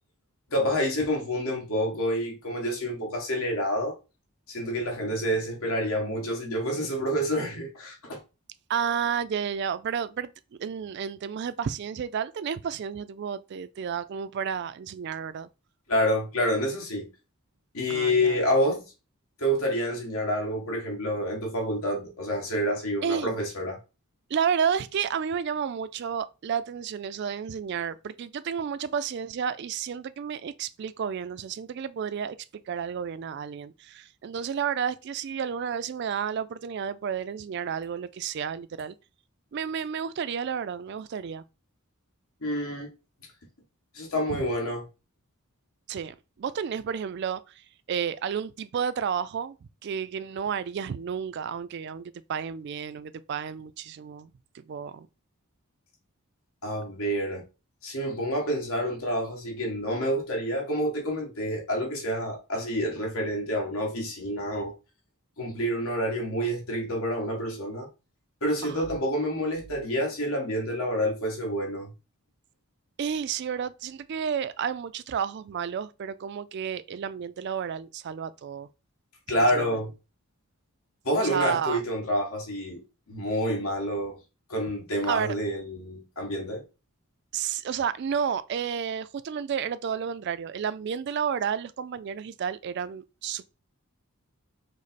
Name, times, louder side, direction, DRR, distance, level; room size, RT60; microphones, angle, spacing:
voice 1, 0.5-4.0 4.5-8.2 15.9-17.1 17.7-18.8 19.4-23.8 42.4-42.9 43.9-44.8 56.6-57.4 57.8-64.7 65.4-67.9 68.4-71.9 79.3-79.9 81.0-82.8 83.1-84.2 84.5-86.6, equal, 75° left, 1.4 m, -28 dB
voice 2, 8.7-10.3 10.6-15.5 17.9-18.4 23.0-23.4 24.3-38.9 39.5-41.4 44.3-44.5 45.9-49.6 49.8-55.1 68.6-68.9 73.0-78.7 79.4-79.8 81.2-81.8 85.1-85.3 87.3-93.4, right 7 dB, 50° right, 0.3 m, -31 dB
5.0 x 2.1 x 4.1 m
head